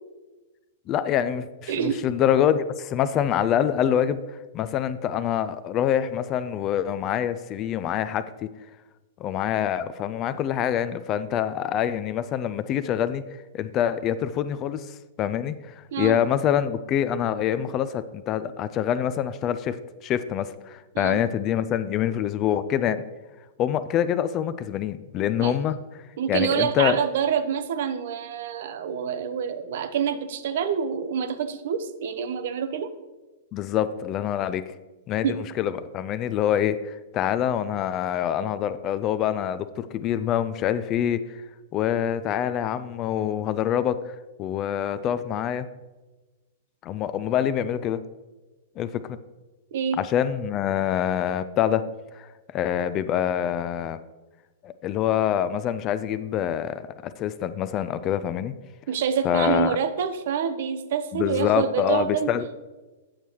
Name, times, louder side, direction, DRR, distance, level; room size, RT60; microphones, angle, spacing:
voice 1, 0.9-8.5 9.2-13.2 13.5-23.0 23.6-25.8 26.3-27.0 33.5-34.7 35.1-35.3 35.6-41.4 41.7-45.7 46.8-48.0 48.8-49.2 50.0-51.9 52.1-54.0 54.6-58.5 59.2-59.8 61.1-62.4, left 10 dB, 30° left, 13 dB, 0.3 m, -25 dB
voice 2, 1.7-2.1 15.9-16.2 20.9-21.2 25.4-25.6 26.2-32.9 35.2-35.5 49.7-50.0 58.9-62.3, right 7 dB, 55° right, 12 dB, 0.6 m, -27 dB
8.7 x 6.7 x 3.0 m, 1.2 s
figure-of-eight pair, 105°, 0 cm